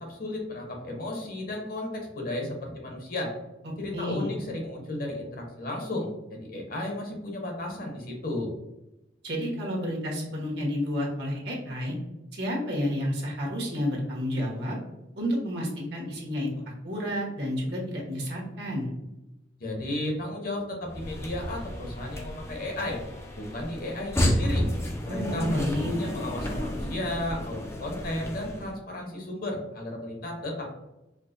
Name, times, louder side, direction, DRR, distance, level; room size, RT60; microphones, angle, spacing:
voice 1, 0.0-3.3 3.8-6.1 6.5-8.5 19.6-23.0 23.4-24.7 25.1-30.6, left 1 dB, 55° left, 0 dB, 0.9 m, -33 dB
voice 2, 3.9-4.3 9.2-11.9 12.3-14.8 15.2-16.5 16.8-18.9 25.1-25.9, equal, 65° right, -3 dB, 1.2 m, -30 dB
sound 1, 20.9-28.7, left 1 dB, 15° left, 0.4 m, -31 dB
4.5 x 2.2 x 2.6 m, 0.94 s
head